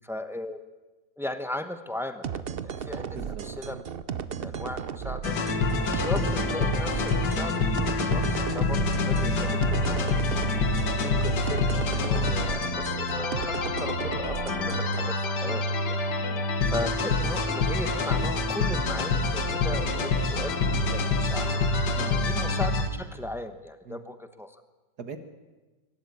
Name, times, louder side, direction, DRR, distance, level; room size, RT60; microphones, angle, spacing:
voice 1, 0.0-0.6 1.2-3.8 4.4-5.3 5.8-8.8 9.1-10.5 11.0-16.0 16.7-21.6 22.2-24.6, left 1 dB, ahead, 9 dB, 0.5 m, -37 dB
sound 1, 2.2-15.1, right 7 dB, 85° right, 0.5 m, -35 dB
voice 2, 3.1-3.4 15.4-15.7 16.2-16.6 21.9-22.3 23.9-24.0 25.0-25.2, right 5 dB, 60° right, 7 dB, 1.9 m, -41 dB
sound 2, 5.2-22.9, left 3 dB, 65° left, 2.1 m, -26 dB
23.5 x 12.0 x 9.6 m, 1.2 s
omnidirectional pair, 2.1 m